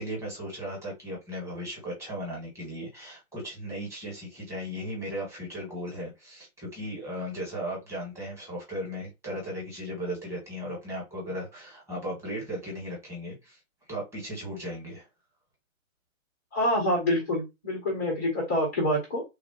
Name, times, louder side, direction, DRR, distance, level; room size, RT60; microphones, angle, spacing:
voice 1, 0.0-13.6 13.9-15.1, equal, 5° right, 1.2 m, -36 dB
voice 2, 16.5-19.2, left 1 dB, 10° left, 0.4 m, -26 dB
3.2 x 2.3 x 2.7 m
figure-of-eight pair, 130°, 41 cm